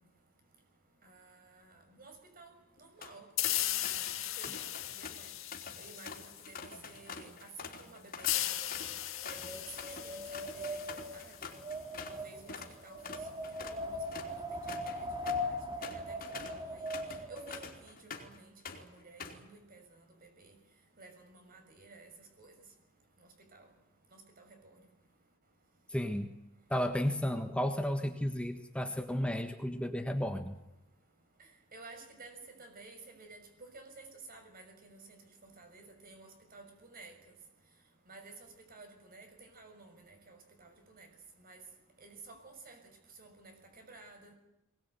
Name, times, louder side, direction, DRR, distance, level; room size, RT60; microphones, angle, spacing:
voice 1, 1.0-3.2 3.5-4.1 4.4-5.3 5.8-9.0 9.3-11.3 12.1-13.0 13.3-14.3 14.7-15.1 15.4-16.2 16.4-16.9 17.3-20.6 21.0-22.1 22.4-22.5 23.5-23.7 24.1-24.5 31.7-33.4 33.7-35.2 35.4-37.1 38.1-38.3 38.7-41.1 41.4-41.6 42.0-42.8 43.2-44.3, right 3 dB, 45° right, 5 dB, 6.2 m, -54 dB
sound 1, 2.8-3.1 3.4-4.2 4.4-12.2 12.5-12.7 13.0-18.4 18.7-19.5, left 5 dB, 45° left, 3.7 m, -46 dB
sound 2, 3.4-6.8 8.2-11.7, left 13 dB, 75° left, 1.9 m, -37 dB
Wind, 8.5-17.7, left 1 dB, 25° right, 2.9 m, -40 dB
voice 2, 25.9-26.3 26.7-30.6, equal, 5° left, 5 dB, 1.4 m, -33 dB
23.0 x 20.0 x 9.3 m, 0.89 s
head